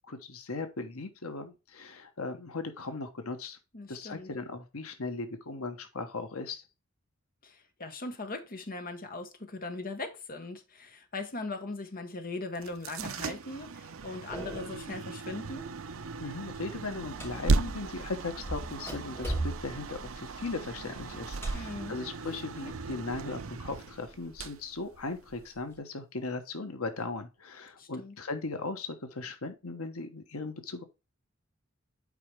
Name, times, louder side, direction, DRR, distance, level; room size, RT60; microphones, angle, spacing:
voice 1, 0.1-3.6 3.9-6.6 16.2-30.8, left 3 dB, 85° left, 1.2 m, -38 dB
voice 2, 3.7-4.3 7.4-15.7 21.5-22.0 27.8-28.2, left 2 dB, 40° left, 1.2 m, -39 dB
sound 1, 12.6-25.5, right 3 dB, 70° right, 0.7 m, -36 dB
sound 2, 14.3-14.9 15.3-15.7 16.0-17.9 18.4-23.1 23.4-24.4 25.0-25.8, right 1 dB, 10° left, 3.0 m, -40 dB
8.6 x 4.9 x 3.3 m
head